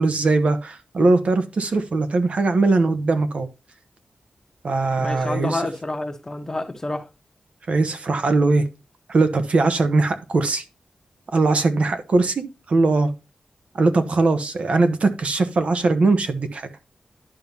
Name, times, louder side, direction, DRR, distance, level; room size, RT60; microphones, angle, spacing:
voice 1, 0.0-3.5 4.6-5.6 7.7-8.7 9.1-10.6 11.3-13.1 13.7-16.7, right 3 dB, 55° right, 1.1 m, -20 dB
voice 2, 5.0-7.1, left 2 dB, 20° left, 1.1 m, -28 dB
11.5 x 5.4 x 2.9 m
wide cardioid pair, 140°, 3 cm